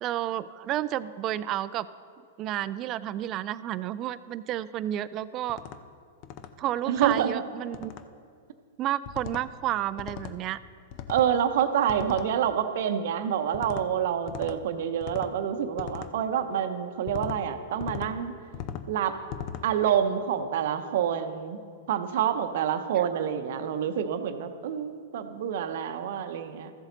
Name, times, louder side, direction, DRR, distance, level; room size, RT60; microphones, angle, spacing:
voice 1, 0.0-1.9 2.4-5.6 6.6-8.0 8.8-10.6, right 12 dB, 40° right, 16 dB, 0.4 m, -31 dB
sound 1, 5.5-5.8 6.2-6.5 7.0-7.2 7.7-8.0 9.1-9.5 10.0-10.4 10.9-11.3 11.9-12.3 13.5-13.9 14.3-14.6 15.0-15.3 15.8-16.1 17.1-17.4 17.8-18.1 18.5-18.9 19.3-19.7, left 9 dB, 45° left, 0.6 m, -38 dB
voice 2, 6.9-7.4 11.1-18.3 18.9-19.2 19.6-21.6 21.9-26.7, right 9 dB, 65° right, 9 dB, 0.7 m, -27 dB
14.0 x 7.2 x 3.9 m, 2.1 s
hypercardioid pair, 110°, 0 cm